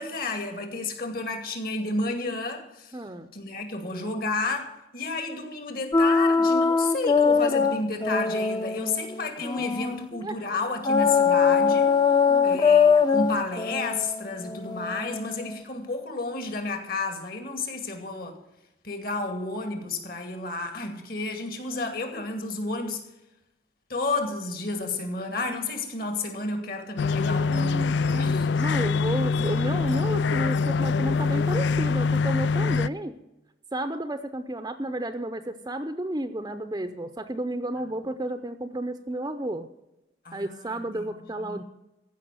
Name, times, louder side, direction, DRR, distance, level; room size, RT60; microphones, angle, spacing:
voice 1, 0.0-3.0 3.3-11.9 12.4-18.4 18.8-23.0 23.9-28.5 40.2-40.8 41.0-41.1 41.4-41.6, left 3 dB, 55° left, 5 dB, 2.4 m, -31 dB
voice 2, 2.9-3.3 9.6-9.7 10.1-10.4 12.3-12.6 27.5-33.1 33.7-39.7 40.3-41.6, right 1 dB, 20° right, 9 dB, 0.6 m, -32 dB
sound 1, 5.9-10.1 10.8-15.6, left 5 dB, 25° left, 0.7 m, -22 dB
sound 2, 27.0-32.9, left 4 dB, 80° left, 0.4 m, -24 dB
15.0 x 5.9 x 9.2 m, 0.94 s
head